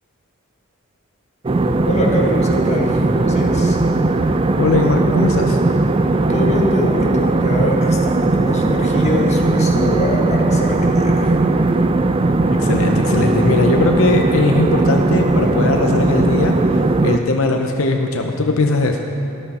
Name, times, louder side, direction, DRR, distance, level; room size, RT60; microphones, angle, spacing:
sound 1, 1.4-17.2, right 2 dB, 25° right, 0.4 m, -17 dB
voice 1, 1.8-3.8 6.3-11.3, left 1 dB, 30° left, -1 dB, 1.5 m, -23 dB
voice 2, 4.6-5.6 12.5-19.0, left 2 dB, 75° left, 3 dB, 0.8 m, -19 dB
13.5 x 12.0 x 4.3 m, 2.8 s
head